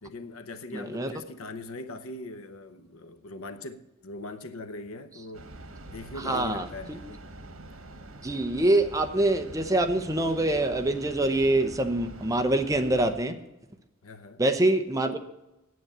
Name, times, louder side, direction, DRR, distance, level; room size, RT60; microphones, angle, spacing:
voice 1, 0.0-5.5 5.9-7.3 14.0-14.4, left 2 dB, 85° left, 0.9 m, -41 dB
voice 2, 0.7-1.1 6.2-7.0 8.2-13.4 14.4-15.2, right 1 dB, 15° right, 0.8 m, -25 dB
Train, 5.3-13.2, right 1 dB, 85° right, 1.3 m, -45 dB
9.5 x 8.0 x 8.8 m
head